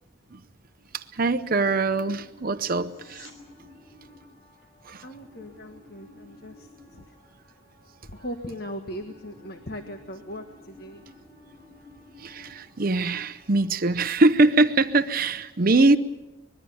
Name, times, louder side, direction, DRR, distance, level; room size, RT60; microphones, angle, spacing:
voice 1, 0.9-3.3 4.8-5.0 12.2-16.0, right 3 dB, 45° right, 11 dB, 0.7 m, -22 dB
sound 1, 2.1-14.0, left 2 dB, 25° left, 7.5 m, -53 dB
sound 2, 2.8-3.4 14.7-14.8, left 2 dB, 70° left, 5.5 m, -51 dB
voice 2, 5.0-7.1 8.0-11.1, equal, 50° left, 5 dB, 1.6 m, -39 dB
24.5 x 21.5 x 7.1 m, 1.0 s
head